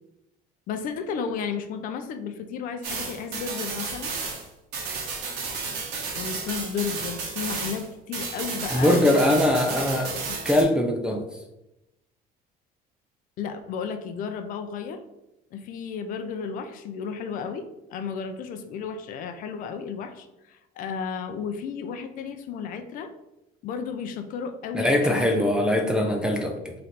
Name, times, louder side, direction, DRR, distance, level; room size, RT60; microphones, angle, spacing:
voice 1, 0.7-4.1 6.1-9.2 9.9-10.4 13.4-15.0 15.5-23.1 23.6-25.3, left 6 dB, 55° left, 8 dB, 0.5 m, -33 dB
sound 1, 2.8-7.9 8.1-10.6, right 4 dB, 85° right, 1.3 m, -32 dB
voice 2, 8.7-10.1 10.5-11.2 24.7-26.7, left 1 dB, 5° right, 3 dB, 0.4 m, -22 dB
3.9 x 3.2 x 4.2 m, 0.92 s
cardioid pair, 160°, 17 cm